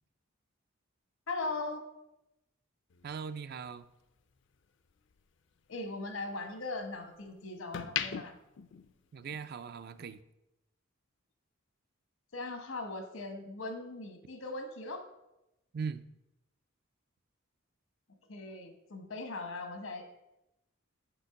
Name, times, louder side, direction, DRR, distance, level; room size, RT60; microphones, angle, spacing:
voice 1, 1.3-1.9 5.7-8.3 12.3-15.1 18.3-20.0, left 2 dB, 85° left, 6 dB, 1.1 m, -39 dB
sound 1, 2.9-5.2 5.6-7.1 7.5-9.6 9.9-10.2, left 9 dB, 60° left, 0.4 m, -41 dB
voice 2, 3.0-3.9 9.1-10.2 15.7-16.0, right 6 dB, 50° right, 13 dB, 0.3 m, -39 dB
6.7 x 5.2 x 5.7 m, 0.90 s
head